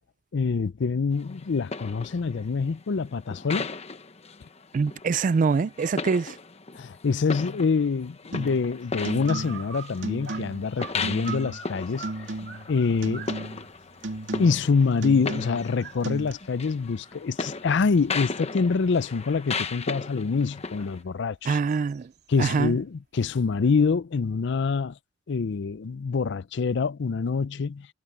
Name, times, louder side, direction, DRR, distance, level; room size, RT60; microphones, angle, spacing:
voice 1, 0.3-3.7 6.8-12.0 12.7-13.3 14.4-21.6 22.3-25.0 25.3-27.9, left 5 dB, 65° left, 0.5 m, -25 dB
sound 1, 1.1-21.0, left 4 dB, 35° left, 1.0 m, -37 dB
voice 2, 4.7-6.4 21.5-22.1 22.4-22.8, right 5 dB, 45° right, 0.3 m, -24 dB
sound 2, 8.3-8.7 9.0-9.7 10.0-10.7 11.0-11.7 12.0-12.7 13.0-13.7 14.0-14.7 15.0-15.7 16.0-16.3, right 2 dB, 75° right, 2.3 m, -34 dB
sound 3, 9.3-18.8 19.3-22.3, right 7 dB, 60° right, 2.9 m, -45 dB
head